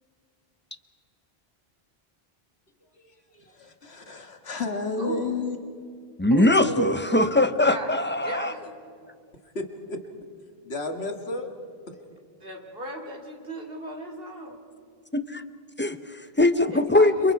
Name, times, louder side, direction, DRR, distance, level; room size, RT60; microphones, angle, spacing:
voice 1, 3.3-5.6 6.8-7.3 9.5-10.0 10.6-11.5 11.9-12.0, left 2 dB, 85° left, 5 dB, 2.1 m, -31 dB
voice 2, 5.0-5.3 6.3-6.7 7.7-9.1 12.1-14.8 16.7-17.3, right 2 dB, 65° right, 2 dB, 3.0 m, -36 dB
voice 3, 6.2-8.5 15.1-15.4 15.8-17.3, left 2 dB, 10° left, 11 dB, 0.8 m, -21 dB
29.5 x 26.5 x 4.7 m, 2.3 s
omnidirectional pair, 1.0 m